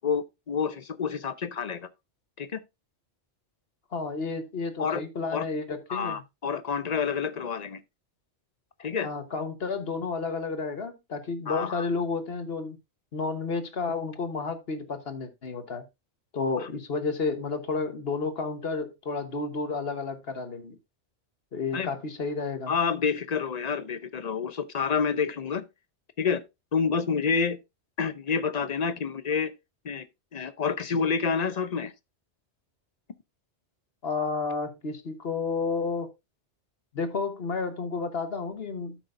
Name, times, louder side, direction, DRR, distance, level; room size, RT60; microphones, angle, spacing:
voice 1, 0.0-1.9 2.4-2.6 4.8-5.0 5.3-5.4 5.9-7.8 8.8-9.1 11.5-11.9 16.6-16.7 21.7-21.9 22.7-25.6 26.2-26.4 26.7-27.6 28.0-29.5 29.8-30.1 30.3-31.9, left 6 dB, 45° left, 0.7 m, -28 dB
voice 2, 3.9-6.2 9.0-12.8 13.1-15.8 16.3-20.8 21.5-22.7 34.0-36.1 36.9-39.0, left 4 dB, 60° left, 1.4 m, -31 dB
12.0 x 6.2 x 2.6 m
omnidirectional pair, 1.2 m